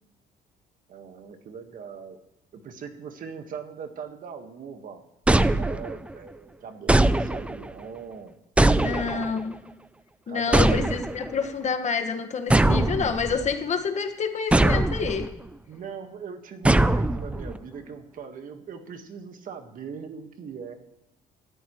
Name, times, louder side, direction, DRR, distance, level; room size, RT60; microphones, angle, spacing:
voice 1, 0.9-2.2 2.5-5.0 5.6-8.3 8.6-9.4 10.3-10.7 15.7-20.8, right 6 dB, 55° right, 6 dB, 1.6 m, -40 dB
sound 1, 5.3-6.1 6.9-7.7 8.6-9.4 10.5-11.3 12.5-13.5 14.5-15.3 16.6-17.6, right 2 dB, 5° right, 0.5 m, -21 dB
voice 2, 8.8-9.6 10.3-15.3, left 6 dB, 45° left, 5 dB, 1.7 m, -28 dB
19.5 x 13.5 x 3.2 m, 0.88 s
cardioid pair, 110°, 17 cm